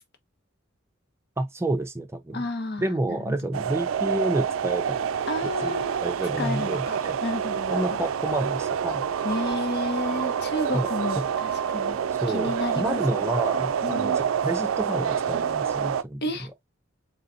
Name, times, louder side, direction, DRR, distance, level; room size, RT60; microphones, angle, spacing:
voice 1, 1.4-2.4 2.8-5.0 5.6-7.2 7.7-9.0 10.7-10.9 12.2-16.2, right 1 dB, 15° right, 0.5 m, -29 dB
voice 2, 2.3-3.4 5.3-6.0 6.4-7.9 9.2-12.0 12.3-13.0 13.8-14.1 16.2-16.5, left 2 dB, 55° left, 1.0 m, -31 dB
sound 1, 3.5-16.0, right 7 dB, 85° right, 0.4 m, -27 dB
4.0 x 3.6 x 2.6 m
head